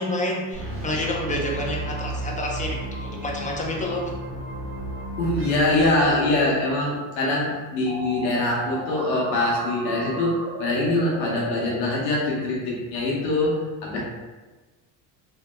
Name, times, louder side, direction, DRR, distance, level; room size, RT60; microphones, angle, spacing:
voice 1, 0.0-4.1 7.1-7.4, left 1 dB, 15° left, -1 dB, 0.6 m, -29 dB
sound 1, 0.5-6.7, right 1 dB, 25° right, 1.2 m, -33 dB
voice 2, 5.2-14.0, left 2 dB, 90° left, -3 dB, 0.9 m, -23 dB
sound 2, 7.9-11.8, right 3 dB, 50° right, 0.6 m, -35 dB
2.9 x 2.9 x 2.2 m, 1.3 s
hypercardioid pair, 75°, 50 cm